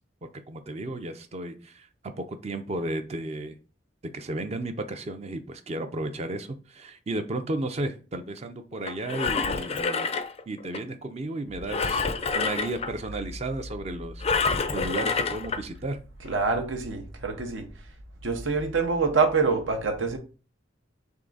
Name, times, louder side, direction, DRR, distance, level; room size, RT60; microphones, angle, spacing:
voice 1, 0.2-1.9 2.2-3.6 4.1-10.1 10.5-14.2 14.5-16.0, right 2 dB, 35° right, 0.4 m, -33 dB
Engine, 8.9-10.8 11.7-12.9 14.2-15.6 16.3-16.4, left 4 dB, 35° left, 0.4 m, -27 dB
voice 2, 16.2-17.7 18.2-20.2, right 4 dB, 80° right, 0.7 m, -25 dB
3.6 x 3.3 x 3.8 m
head